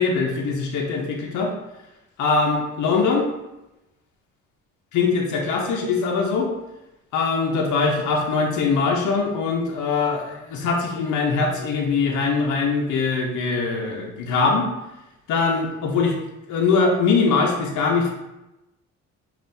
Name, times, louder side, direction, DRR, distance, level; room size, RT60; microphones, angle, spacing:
voice 1, 0.0-1.5 2.2-3.3 4.9-6.5 7.1-14.7 15.3-16.1 16.5-18.1, left 4 dB, 75° left, 0 dB, 0.7 m, -22 dB
5.4 x 2.5 x 2.6 m, 0.95 s
cardioid pair, 90°, 30 cm